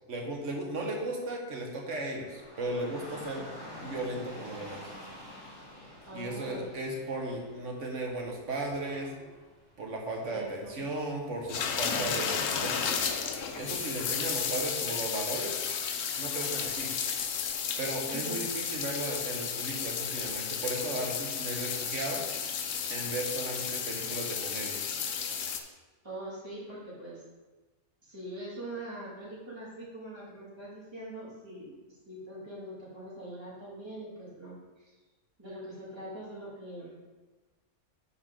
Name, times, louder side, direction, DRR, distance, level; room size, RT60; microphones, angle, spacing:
voice 1, 0.1-3.5 3.8-4.9 6.1-9.1 9.8-12.8 13.5-15.5 16.2-16.9 17.8-22.2 22.9-24.8, right 2 dB, 55° right, 0 dB, 1.6 m, -36 dB
Dog / Rain, 2.2-14.3, left 1 dB, 15° left, 1.8 m, -50 dB
voice 2, 6.1-6.7 10.3-10.8 18.1-18.4 26.0-27.2 28.0-31.8 32.1-34.8 35.4-37.0, right 1 dB, 15° right, -7 dB, 2.2 m, -43 dB
sound 1, 11.5-25.6, left 7 dB, 65° left, 1.0 m, -33 dB
10.5 x 4.5 x 3.7 m, 1.2 s
omnidirectional pair, 1.6 m